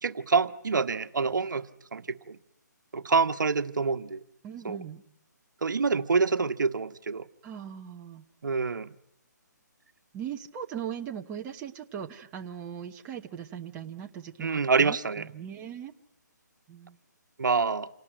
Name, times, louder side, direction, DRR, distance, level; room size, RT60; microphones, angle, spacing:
voice 1, 0.0-1.7 1.9-2.4 2.9-4.2 4.6-4.8 5.6-7.3 8.4-8.9 14.4-15.3 17.4-17.9, right 4 dB, 80° right, 10 dB, 1.2 m, -26 dB
voice 2, 4.4-5.0 7.4-8.2 10.1-15.9 16.7-17.0, right 9 dB, 15° right, 3 dB, 0.9 m, -39 dB
28.0 x 18.5 x 9.1 m, 0.75 s
hypercardioid pair, 160°, 10 cm